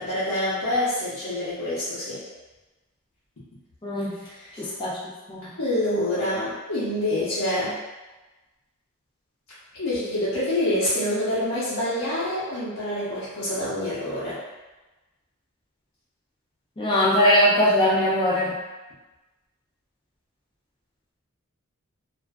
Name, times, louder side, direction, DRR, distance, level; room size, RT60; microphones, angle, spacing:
voice 1, 0.0-2.2 4.3-4.7 5.4-7.8 9.7-14.4, left 1 dB, 85° left, -13 dB, 0.8 m, -26 dB
voice 2, 3.8-4.1 4.6-5.0 5.3-5.5 16.8-18.6, equal, 20° left, -6 dB, 0.5 m, -21 dB
2.4 x 2.4 x 2.3 m, 1.1 s
head